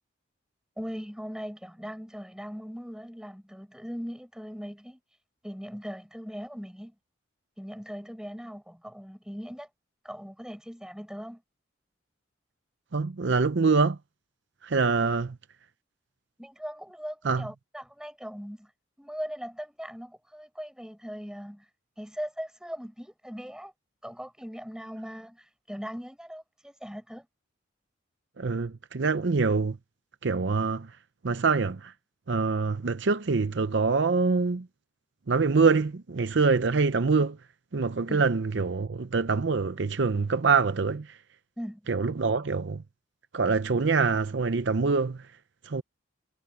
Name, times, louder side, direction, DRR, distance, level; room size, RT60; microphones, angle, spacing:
voice 1, 0.8-5.0 5.4-6.9 7.6-9.7 10.0-11.4 16.4-18.7 19.0-21.7 22.0-23.7 24.0-27.3 38.1-38.2 41.6-41.9, equal, 5° right, 8.0 m, -39 dB
voice 2, 12.9-14.0 14.6-15.4 17.2-17.5 28.4-29.8 30.2-31.0 31.2-31.9 32.3-34.7 35.3-37.3 37.7-41.2 41.9-42.8 43.3-45.3 45.6-45.8, right 4 dB, 60° right, 0.6 m, -25 dB
head